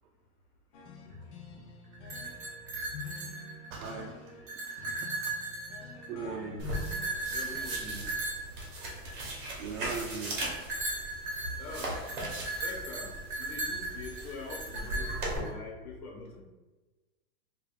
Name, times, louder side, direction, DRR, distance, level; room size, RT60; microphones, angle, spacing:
sound 1, 0.7-7.7, left 5 dB, 55° left, 0.6 m, -47 dB
sound 2, 1.9-3.9 4.3-6.2 6.7-9.4 10.4-15.5, right 2 dB, 20° right, 0.5 m, -37 dB
voice 1, 3.7-4.3 4.6-4.9 5.2-5.3 6.1-6.6 9.6-10.4, right 5 dB, 65° right, -1 dB, 0.6 m, -39 dB
voice 2, 6.1-6.6 7.3-8.1 11.5-12.2 12.6-16.4, left 2 dB, 85° left, 0 dB, 1.1 m, -43 dB
sound 3, 6.6-15.4, right 1 dB, 35° right, 1.0 m, -39 dB
4.8 x 2.5 x 2.4 m, 1.2 s
supercardioid pair, 165°, 43 cm